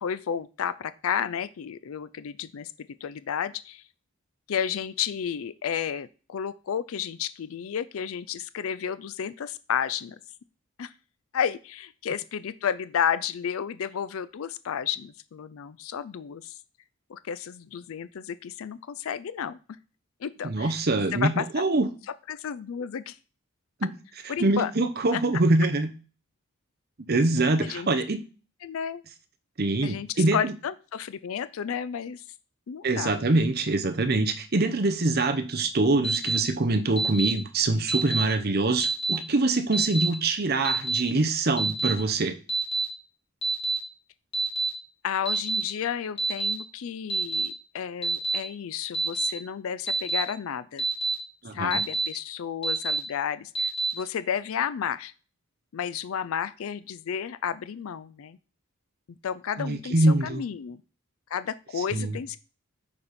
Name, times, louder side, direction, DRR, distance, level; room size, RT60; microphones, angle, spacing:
voice 1, 0.0-2.7 3.0-3.8 4.5-10.2 10.8-10.9 11.3-16.6 17.1-19.6 20.2-20.8 21.1-21.4 22.3-23.2 24.3-24.7 25.1-25.2 27.6-27.9 28.6-29.0 29.8-32.2 32.7-33.2 45.0-50.8 51.5-55.1 55.7-58.4 59.2-60.8 61.3-62.4, left 8 dB, 70° left, 15 dB, 0.4 m, -32 dB
voice 2, 20.4-21.9 23.8-23.9 24.4-25.9 27.0-28.2 29.6-30.5 32.8-42.3 51.4-51.8 59.6-60.4 61.9-62.2, right 2 dB, 45° right, 9 dB, 0.8 m, -24 dB
Alarm, 36.0-36.4 37.0-37.3 37.9-38.2 38.8-39.2 39.7-40.1 40.6-41.0 41.6-41.9 42.5-42.8 43.4-43.8 44.3-44.7 45.2-45.6 46.2-46.5 47.1-47.5 48.0-48.4 48.9-49.3 49.9-50.2 50.8-51.1 51.7-52.1 52.6-53.0 53.5-53.9, right 3 dB, 25° left, 2.2 m, -26 dB
6.9 x 4.2 x 5.1 m, 0.36 s
head